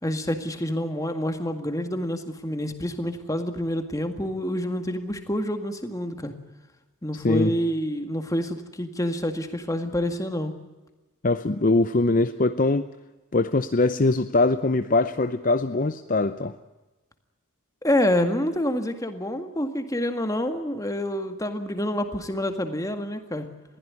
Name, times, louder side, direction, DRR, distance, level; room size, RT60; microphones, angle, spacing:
voice 1, 0.0-6.3 7.0-10.5 17.8-23.5, left 1 dB, 15° left, 7 dB, 1.9 m, -27 dB
voice 2, 7.1-7.5 11.2-12.9 13.3-16.5, left 2 dB, 40° left, 10 dB, 0.7 m, -22 dB
21.5 x 16.0 x 9.7 m, 1.1 s
head